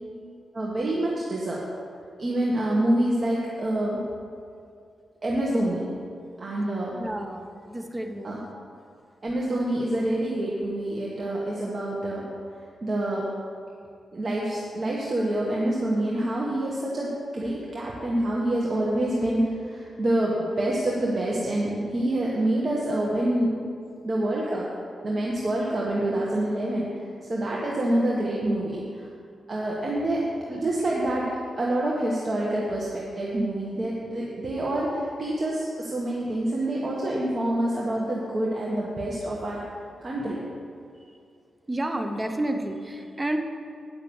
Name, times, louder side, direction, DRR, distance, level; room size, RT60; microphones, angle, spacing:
voice 1, 0.5-1.6 2.2-4.0 5.2-5.8 6.4-7.0 8.2-8.4 9.2-12.2 12.8-13.3 14.1-23.5 24.0-24.7 25.0-26.9 27.3-29.1 29.5-30.2 30.5-31.3 31.6-39.6 40.0-40.5, right 1 dB, 35° right, -5 dB, 1.2 m, -26 dB
voice 2, 6.9-8.5 41.1-41.2 41.7-43.4, right 1 dB, 15° right, 5 dB, 0.7 m, -31 dB
9.3 x 5.8 x 6.9 m, 2.4 s
wide cardioid pair, 130°, 0 cm